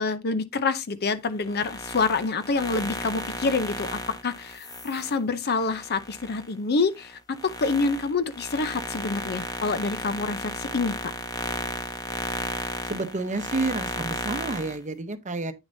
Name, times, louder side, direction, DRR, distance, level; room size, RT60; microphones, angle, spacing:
voice 1, 0.0-11.1, left 4 dB, 45° left, 0.7 m, -27 dB
sound 1, 1.4-6.5 6.9-14.8, left 1 dB, 15° left, 1.0 m, -34 dB
voice 2, 12.8-15.5, right 3 dB, 35° right, 0.8 m, -30 dB
9.0 x 6.6 x 2.7 m
head